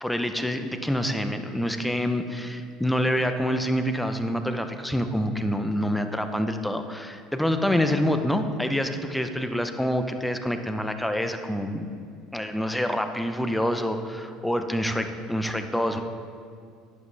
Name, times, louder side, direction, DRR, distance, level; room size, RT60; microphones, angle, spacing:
voice 1, 0.0-11.9 12.3-16.0, equal, 5° left, 7 dB, 0.7 m, -26 dB
10.5 x 8.3 x 3.4 m, 2.3 s
supercardioid pair, 85°, 0 cm